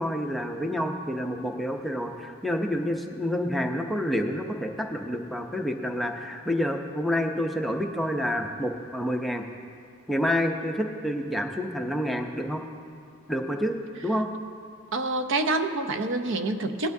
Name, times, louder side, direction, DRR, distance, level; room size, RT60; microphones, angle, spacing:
voice 1, 0.0-9.4 10.1-12.6 13.3-13.8 14.0-14.3, equal, ahead, 2 dB, 0.6 m, -28 dB
voice 2, 14.9-16.9, right 2 dB, 65° right, 8 dB, 0.6 m, -27 dB
19.0 x 10.5 x 2.7 m, 2.3 s
head